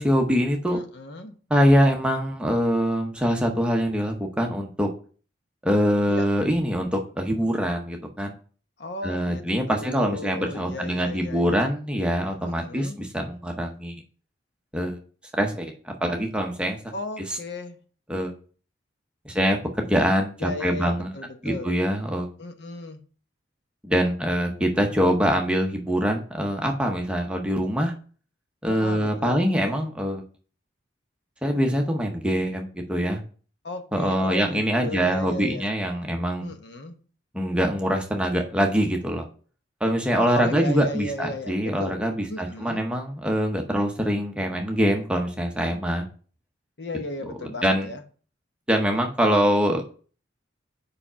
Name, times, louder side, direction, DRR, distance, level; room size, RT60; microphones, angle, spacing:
voice 1, 0.0-0.8 1.5-4.9 5.6-8.3 9.0-14.0 14.7-15.0 15.4-16.8 17.2-17.4 18.1-18.3 19.2-21.1 21.4-22.3 23.8-27.9 28.6-30.2 31.4-33.2 33.9-36.5 37.3-39.2 39.8-46.1 47.6-47.9 48.7-49.8, equal, 5° right, 2 dB, 0.7 m, -24 dB
voice 2, 0.7-1.3 6.1-6.2 8.8-11.7 12.4-13.0 16.9-17.8 20.4-21.7 22.4-23.0 28.7-29.5 33.6-35.7 36.4-36.9 40.1-42.0 42.3-42.8 46.8-48.0, left 1 dB, 60° left, 7 dB, 0.8 m, -35 dB
4.9 x 4.9 x 5.5 m, 0.41 s
head